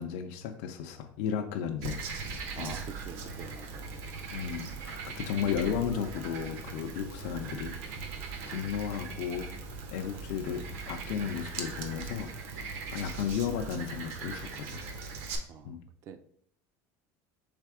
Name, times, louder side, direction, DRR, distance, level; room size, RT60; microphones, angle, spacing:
voice 1, 0.0-2.1 2.6-2.8 4.3-8.2 8.5-9.5 9.9-12.3 12.9-14.8 15.6-15.8, left 8 dB, 75° left, 4 dB, 0.5 m, -34 dB
Frog, 1.8-15.4, right 4 dB, 75° right, 0.9 m, -40 dB
voice 2, 2.5-4.0 12.9-13.0 15.5-15.8 16.0-16.2, right 7 dB, 40° right, 9 dB, 0.4 m, -46 dB
3.4 x 3.3 x 4.8 m, 0.67 s
cardioid pair, 145°, 7 cm